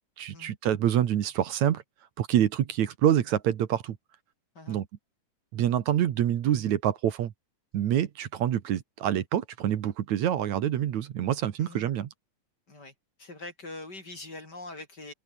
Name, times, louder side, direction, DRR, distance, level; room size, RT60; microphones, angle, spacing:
voice 1, 0.2-1.8 2.2-4.0 4.7-4.9 5.5-7.3 7.7-12.1, right 10 dB, 65° right, 2.6 m, -26 dB
voice 2, 13.2-15.1, left 2 dB, 30° left, 4.4 m, -43 dB
open air
omnidirectional pair, 3.7 m